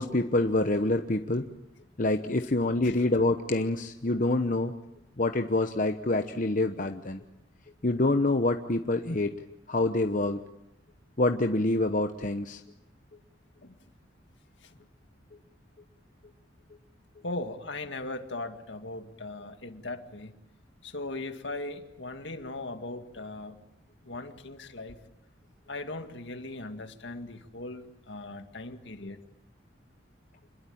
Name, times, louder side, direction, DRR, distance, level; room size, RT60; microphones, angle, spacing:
voice 1, 0.0-1.5 2.0-4.7 5.2-7.2 7.8-9.3 9.7-10.5 11.2-12.6, left 2 dB, 45° left, 6 dB, 1.0 m, -26 dB
voice 2, 17.2-20.4 20.8-23.6 24.0-25.0 25.7-29.2, left 2 dB, 70° left, 7 dB, 2.1 m, -39 dB
27.5 x 21.5 x 8.7 m, 0.85 s
head